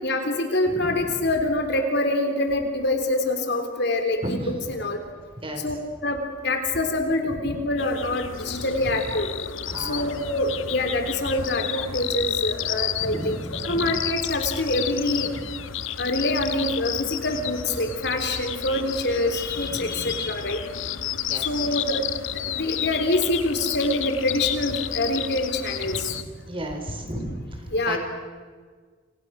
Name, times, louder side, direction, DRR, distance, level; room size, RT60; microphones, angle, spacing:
voice 1, 0.0-4.4 4.8-5.0 5.6-5.8 6.0-9.3 9.8-13.4 13.6-15.3 16.0-20.6 21.4-22.1 22.6-26.1 27.7-28.0, left 2 dB, 55° left, 6 dB, 3.8 m, -25 dB
voice 2, 0.6-1.1 4.2-4.6 5.4-5.6 7.3-7.4 9.7-10.4 11.9-12.2 12.5-14.0 15.2-15.5 19.7-20.2 21.3-21.8 25.8-28.0, right 1 dB, 25° right, 4 dB, 5.0 m, -36 dB
sound 1, 7.8-26.2, left 9 dB, 75° left, 1.2 m, -31 dB
28.5 x 27.5 x 6.6 m, 1.5 s
head